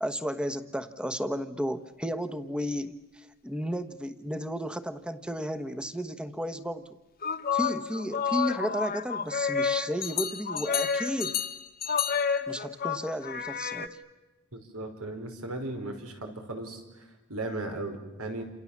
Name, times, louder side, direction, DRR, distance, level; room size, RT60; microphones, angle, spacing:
voice 1, 0.0-6.8 7.5-11.4 12.5-14.0, equal, 5° right, 9 dB, 1.2 m, -33 dB
sound 1, 7.2-13.9, left 7 dB, 45° left, 1.3 m, -30 dB
voice 2, 14.5-18.4, right 2 dB, 90° right, 5 dB, 5.1 m, -37 dB
29.0 x 27.5 x 7.4 m, 1.1 s
head